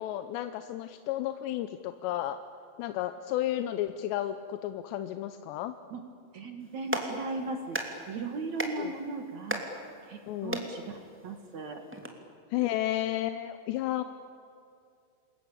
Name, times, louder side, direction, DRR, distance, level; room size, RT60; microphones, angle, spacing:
voice 1, 0.0-2.4 2.8-5.8 8.8-9.0 10.3-10.7 12.5-14.0, left 13 dB, 85° left, 9 dB, 3.0 m, -32 dB
voice 2, 6.3-9.6 10.1-11.8, right 3 dB, 55° right, 5 dB, 2.4 m, -37 dB
Clapping, 6.6-12.1, right 1 dB, 5° right, 1.4 m, -38 dB
28.0 x 21.5 x 8.7 m, 2.5 s
omnidirectional pair, 4.9 m